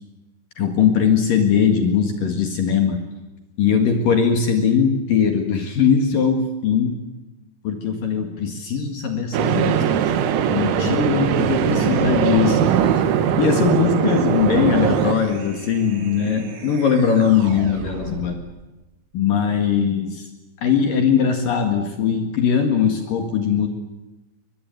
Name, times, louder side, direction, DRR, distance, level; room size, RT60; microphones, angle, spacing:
voice 1, 0.6-3.0 3.6-7.0 7.6-10.1 10.5-13.0 13.4-18.4 19.1-20.3 20.6-23.7, left 7 dB, 55° left, 5 dB, 3.2 m, -20 dB
sound 1, 9.3-15.1, right 9 dB, 90° right, 3.9 m, -20 dB
sound 2, 14.4-18.5, right 4 dB, 65° right, 4.7 m, -36 dB
23.0 x 22.0 x 9.0 m, 1.1 s
omnidirectional pair, 5.3 m